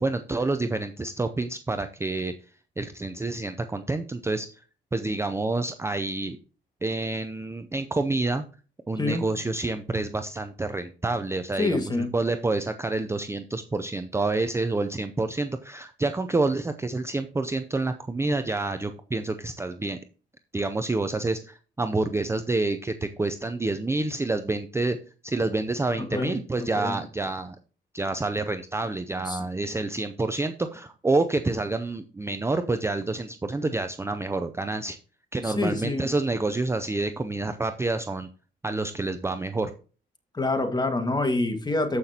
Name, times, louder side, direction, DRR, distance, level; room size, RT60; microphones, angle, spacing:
voice 1, 0.0-2.3 2.8-4.5 4.9-6.4 6.8-8.4 8.9-20.0 20.5-25.0 25.2-27.6 27.9-35.0 35.3-38.3 38.6-39.7, right 2 dB, 15° right, 9 dB, 0.5 m, -28 dB
voice 2, 11.6-12.1 26.0-27.0 29.2-29.4 35.4-36.1 40.3-42.0, left 2 dB, 20° left, 6 dB, 1.7 m, -27 dB
14.0 x 5.8 x 2.8 m, 0.38 s
cardioid pair, 90°, 20 cm